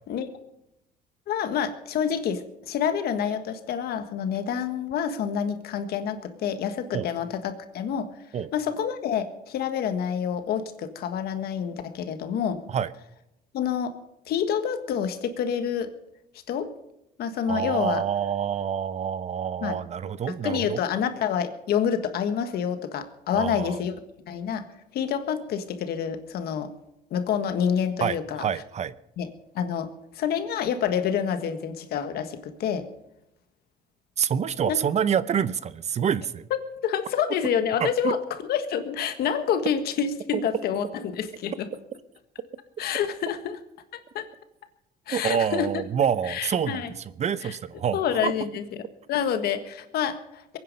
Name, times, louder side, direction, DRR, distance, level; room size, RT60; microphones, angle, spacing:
voice 1, 1.3-8.1 8.5-12.6 13.5-13.9 14.3-15.9 16.5-16.7 17.2-18.0 19.6-19.8 20.4-23.9 24.3-24.6 24.9-26.7 27.1-28.4 29.2-29.3 29.5-29.9 30.1-32.9 34.7-34.8 36.5-38.2 38.5-41.7 42.8-43.6 43.9-44.3 45.1-45.8 46.3-46.9 47.4-47.5 47.9-48.6 49.1-50.6, left 8 dB, 70° left, 9 dB, 1.6 m, -28 dB
voice 2, 17.5-20.8 23.3-23.8 28.0-28.9 34.2-36.4 37.8-38.1 45.1-46.8 47.2-48.3, right 8 dB, 40° right, 16 dB, 0.7 m, -27 dB
22.5 x 9.7 x 5.4 m, 0.84 s
cardioid pair, 110°, 17 cm